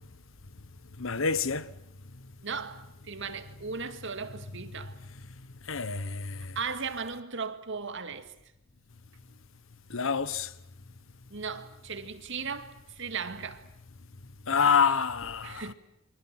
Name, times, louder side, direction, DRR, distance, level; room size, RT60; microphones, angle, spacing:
voice 1, 1.0-1.7 2.2-2.3 5.1-5.2 5.6-6.6 9.9-10.5 14.5-15.7, left 6 dB, 70° left, 1.1 m, -27 dB
voice 2, 2.4-5.0 6.6-8.3 11.3-13.7 15.4-15.7, right 5 dB, 65° right, 2.1 m, -37 dB
29.5 x 24.0 x 7.6 m
head